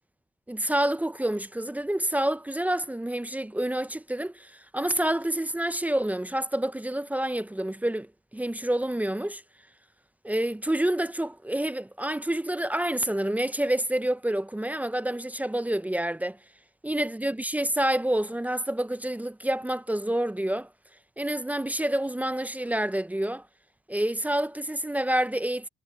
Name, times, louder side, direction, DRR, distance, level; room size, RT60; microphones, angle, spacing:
voice 1, 0.5-9.4 10.2-16.4 16.8-20.7 21.2-23.4 23.9-25.7, right 1 dB, 10° right, 0.7 m, -28 dB
cardioid pair, 90°, 20 cm